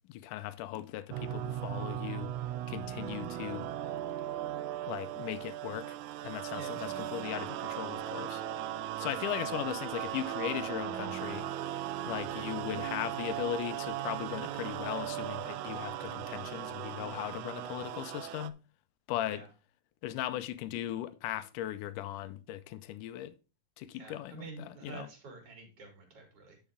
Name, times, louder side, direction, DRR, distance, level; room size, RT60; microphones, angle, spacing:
voice 1, 0.1-2.3 2.7-3.7 4.8-6.0 6.2-8.4 9.0-11.5 12.1-18.6 19.1-19.4 20.0-23.3 23.8-25.1, left 13 dB, 90° left, 2.2 m, -38 dB
sound 1, 1.1-18.5, right 12 dB, 80° right, 1.9 m, -38 dB
voice 2, 6.5-7.3 19.2-19.5 23.9-26.6, right 4 dB, 50° right, 3.7 m, -48 dB
10.0 x 5.9 x 3.6 m
omnidirectional pair, 3.6 m